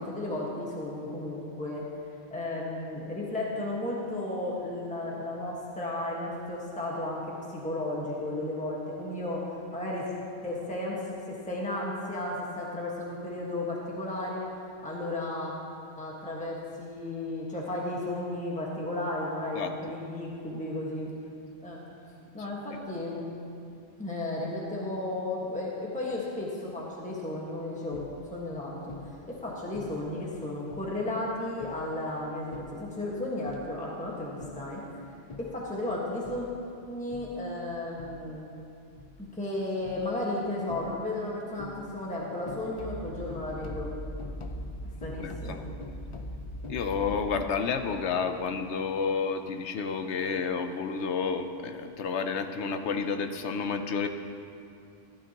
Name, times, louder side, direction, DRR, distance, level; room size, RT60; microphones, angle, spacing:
voice 1, 0.0-1.8 2.3-9.5 9.7-10.1 10.4-11.0 11.3-14.5 14.8-15.5 16.0-21.1 21.6-21.8 22.3-23.3 24.0-28.0 28.3-28.8 29.3-34.8 35.4-36.5 36.9-38.5 39.2-43.9 45.0-45.6, left 1 dB, 5° left, -4 dB, 1.5 m, -34 dB
sound 1, 27.9-28.4 28.9-29.4 29.7-30.2 30.7-31.0 31.6-32.0 32.5-32.9 33.5-33.9 34.4-34.8 35.3-35.7 36.2-36.6 37.1-37.5 38.0-38.4 39.0-39.3 39.8-40.2 40.7-41.2 41.6-42.1 42.5-47.4, left 1 dB, 40° left, 0.5 m, -41 dB
voice 2, 45.2-45.6 46.7-54.1, left 5 dB, 70° left, 7 dB, 1.0 m, -30 dB
14.5 x 12.0 x 3.0 m, 2.6 s
omnidirectional pair, 1.2 m